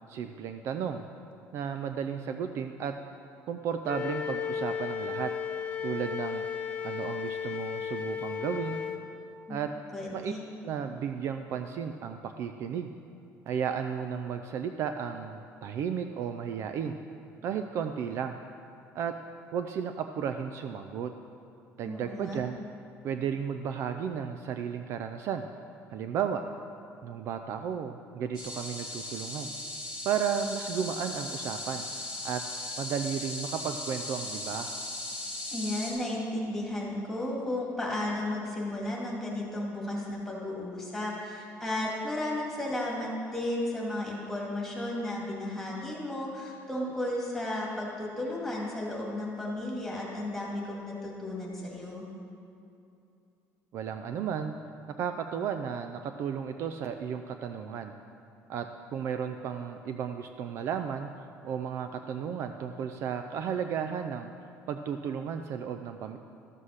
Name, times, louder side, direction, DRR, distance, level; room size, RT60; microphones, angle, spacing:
voice 1, 0.1-1.1 1.5-2.9 3.5-5.3 5.8-6.4 6.8-8.8 9.5-9.7 10.1-10.3 10.6-12.9 13.5-17.0 17.4-18.4 18.9-19.1 19.5-21.1 21.8-22.6 23.0-25.5 25.9-26.4 27.0-29.5 30.0-31.9 32.2-32.4 32.8-34.7 53.7-54.5 55.0-57.9 58.5-61.1 61.4-64.3 64.7-66.2, right 7 dB, 45° right, 7 dB, 0.4 m, -33 dB
Wind instrument woodwind instrument, 3.8-9.0, left 7 dB, 20° left, 0.7 m, -34 dB
voice 2, 9.9-10.4 21.9-22.4 35.5-52.0, left 1 dB, 5° left, -4 dB, 2.0 m, -34 dB
sound 1, 28.3-35.9, left 2 dB, 15° right, 2.9 m, -38 dB
12.5 x 7.6 x 6.4 m, 2.6 s
cardioid pair, 180°, 6 cm